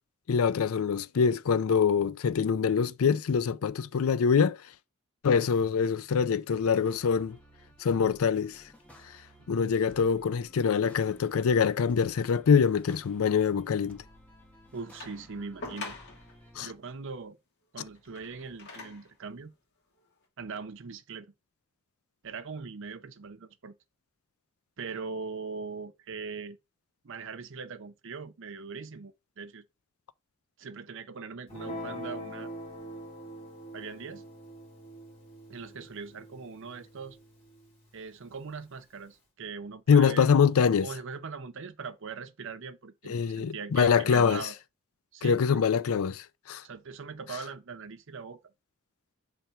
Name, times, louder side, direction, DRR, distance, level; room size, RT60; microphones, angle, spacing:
voice 1, 0.3-4.6 5.2-7.4 7.8-8.6 9.5-14.0 16.6-16.7 39.9-40.9 43.1-44.4 45.2-46.6, left 6 dB, 70° left, 0.4 m, -24 dB
sound 1, 6.5-16.7, equal, 5° left, 1.6 m, -56 dB
voice 2, 14.7-16.0 16.6-17.4 17.7-19.5 20.4-21.3 22.2-23.8 24.8-26.6 27.0-29.6 30.6-32.5 33.7-34.3 35.5-37.2 37.9-40.4 40.8-44.6 45.1-45.6 46.6-48.4, right 5 dB, 60° right, 0.7 m, -41 dB
sound 2, 15.0-16.4 17.9-19.2 20.0-20.1, left 3 dB, 55° left, 2.1 m, -44 dB
Guitar, 31.5-38.1, equal, 30° left, 4.3 m, -44 dB
6.7 x 3.4 x 4.4 m
head